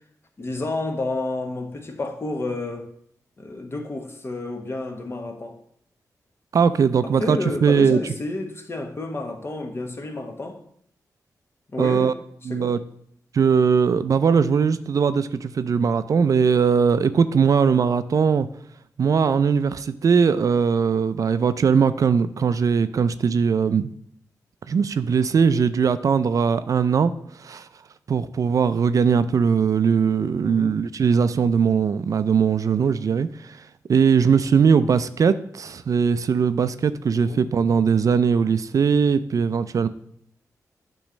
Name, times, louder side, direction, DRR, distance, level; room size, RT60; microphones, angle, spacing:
voice 1, 0.4-2.9 3.4-5.6 7.0-10.6 11.7-12.1 12.5-12.7 30.4-30.8 37.1-37.4, left 2 dB, 40° left, 1.2 m, -30 dB
voice 2, 6.5-8.0 11.8-12.1 12.5-12.8 13.3-18.5 19.0-23.8 24.7-27.1 27.4-27.7 28.1-33.6 33.9-39.9, right 6 dB, 60° right, 0.4 m, -20 dB
8.7 x 3.1 x 6.3 m
cardioid pair, 80°, 6 cm